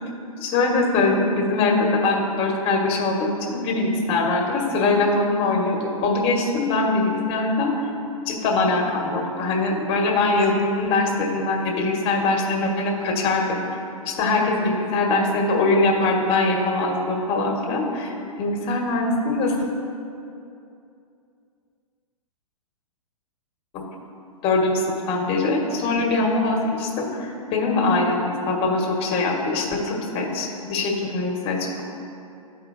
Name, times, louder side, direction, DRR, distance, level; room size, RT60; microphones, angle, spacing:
voice 1, 0.4-7.9 8.3-13.6 14.1-18.1 18.4-19.5 23.7-23.8 24.4-31.8, left 3 dB, 30° left, 0 dB, 1.3 m, -22 dB
12.5 x 4.5 x 2.5 m, 2.7 s
figure-of-eight pair, 110°, 18 cm